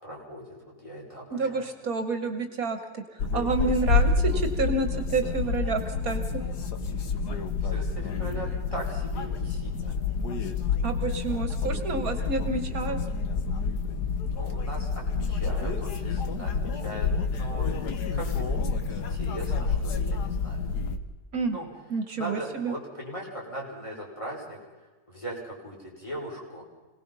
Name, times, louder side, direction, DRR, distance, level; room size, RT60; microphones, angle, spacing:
voice 1, 0.0-0.6 0.8-1.7 7.6-10.0 14.4-20.7 21.5-21.7 22.1-24.6 25.1-26.6, right 1 dB, 20° left, -2 dB, 5.9 m, -39 dB
voice 2, 1.3-3.0 3.3-6.4 10.8-13.0 21.3-21.6 21.9-22.8, right 4 dB, 65° right, 8 dB, 1.9 m, -29 dB
sound 1, 3.2-21.0, left 4 dB, 90° left, 1.9 m, -28 dB
26.5 x 18.5 x 5.6 m, 1.3 s
omnidirectional pair, 1.7 m